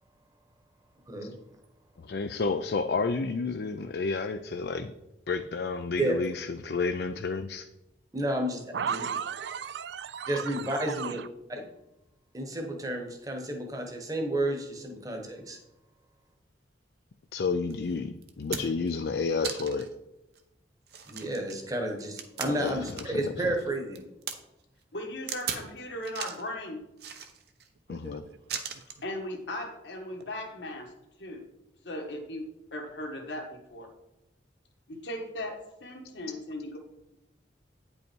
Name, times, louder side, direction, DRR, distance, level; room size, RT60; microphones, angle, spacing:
voice 1, 1.1-1.4 6.0-6.2 8.1-9.0 10.3-11.2 11.5-11.6 12.3-15.6 21.1-24.0, right 1 dB, 20° right, 1.1 m, -31 dB
voice 2, 2.0-4.9 5.3-7.6 17.3-19.9 22.4-23.5 27.9-28.2, left 4 dB, 60° left, 0.4 m, -31 dB
voice 3, 8.7-11.2 27.9-28.4, right 7 dB, 75° right, 0.4 m, -35 dB
sound 1, 17.7-17.8 18.2-18.9 19.4-19.9 20.4-20.5 20.9-23.3 23.6-24.4 25.3-25.7 26.0-26.5 27.0-27.7 28.5-29.0 30.1-30.3, right 7 dB, 60° right, 0.8 m, -38 dB
voice 4, 24.9-26.8 29.0-30.9 31.2-31.4 31.8-32.5 32.7-33.9 34.9-36.8, left 1 dB, 80° left, 1.6 m, -37 dB
9.4 x 5.4 x 4.5 m
head